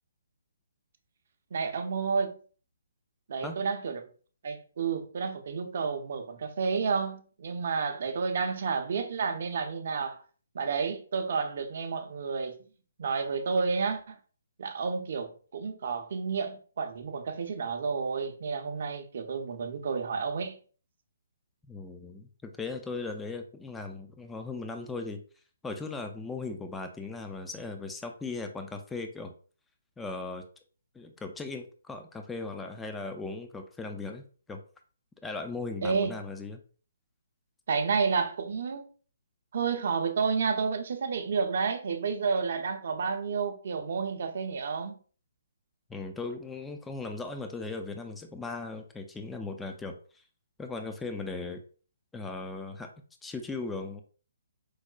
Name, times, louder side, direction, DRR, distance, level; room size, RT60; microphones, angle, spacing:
voice 1, 1.5-2.4 3.3-4.0 4.4-10.2 10.5-12.6 13.0-14.2 14.6-20.6 35.8-36.1 37.7-38.8 39.5-45.0, right 5 dB, 55° right, 0.5 m, -30 dB
voice 2, 21.7-25.2 25.6-29.3 30.0-30.4 30.9-34.6 35.2-36.6 45.9-50.2 50.6-51.6 52.1-52.9 53.2-54.0, left 3 dB, 10° left, 0.3 m, -38 dB
4.6 x 2.1 x 2.4 m
figure-of-eight pair, 140°, 0 cm